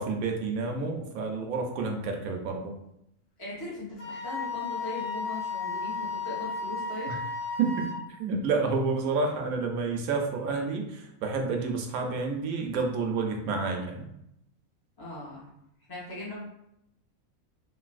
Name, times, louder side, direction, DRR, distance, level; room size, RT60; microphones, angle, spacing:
voice 1, 0.0-2.7 7.1-7.2 7.6-14.1, right 4 dB, 85° right, 3 dB, 1.0 m, -29 dB
voice 2, 3.4-7.1 15.0-15.5 15.9-16.4, left 1 dB, 20° left, -7 dB, 0.6 m, -39 dB
Wind instrument woodwind instrument, 4.0-8.0, left 4 dB, 65° left, 1.4 m, -34 dB
3.2 x 2.5 x 2.4 m, 0.79 s
omnidirectional pair, 1.5 m